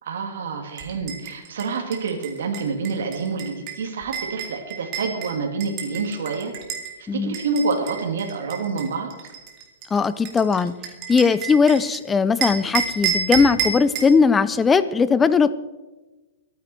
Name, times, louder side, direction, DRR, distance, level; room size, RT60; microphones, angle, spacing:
voice 1, 0.0-6.5 7.1-9.1, right 4 dB, 80° right, 2 dB, 2.4 m, -27 dB
sound 1, 0.8-6.9 7.3-12.0 12.4-14.1, right 7 dB, 30° right, 2.1 m, -30 dB
voice 2, 7.1-7.4 9.9-10.7 11.1-15.5, left 5 dB, 10° left, 15 dB, 0.4 m, -19 dB
22.5 x 9.4 x 4.5 m, 1.1 s
supercardioid pair, 175°, 0 cm